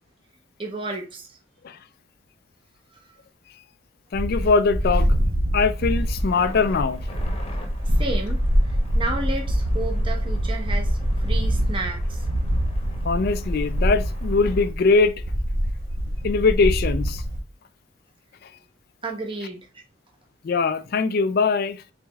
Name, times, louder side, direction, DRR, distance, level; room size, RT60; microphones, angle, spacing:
voice 1, 0.6-1.3 7.9-8.4 8.9-12.2 19.0-19.7, right 2 dB, 25° right, 0.8 m, -32 dB
voice 2, 4.1-5.1 5.5-7.0 13.0-15.1 16.2-17.2 20.4-21.8, left 4 dB, 50° left, 0.4 m, -21 dB
sound 1, 4.1-17.4, equal, 90° right, 1.0 m, -24 dB
sound 2, 5.7-14.7, left 1 dB, 30° left, 0.9 m, -45 dB
4.6 x 4.1 x 2.3 m
head